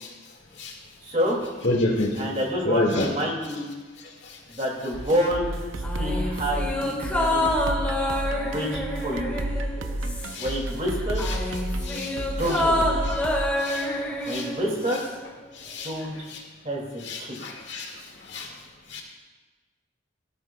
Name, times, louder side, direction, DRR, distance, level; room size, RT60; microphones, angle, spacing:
voice 1, 1.0-1.4 2.2-3.7 4.5-5.5 5.9-7.5 8.4-9.3 10.4-11.2 12.4-13.0 14.2-15.0 15.8-16.1 16.6-17.4, equal, 35° right, -1 dB, 2.4 m, -28 dB
voice 2, 1.6-2.2 2.6-3.1 7.2-7.3 9.3-9.4 10.3-10.5 11.2-11.4 11.8-12.1 13.0-13.2 13.6-13.9 14.3-14.5 15.6-15.9 16.3-16.4 17.0-17.9 18.3-18.5 18.9-19.0, left 2 dB, 60° left, 0 dB, 2.0 m, -28 dB
sound 1, 4.9-13.4, right 1 dB, 85° right, 0.7 m, -31 dB
sound 2, 5.8-10.6 10.9-15.2 15.5-15.6, left 1 dB, 10° left, 1.6 m, -28 dB
17.5 x 13.0 x 2.3 m, 1.3 s
head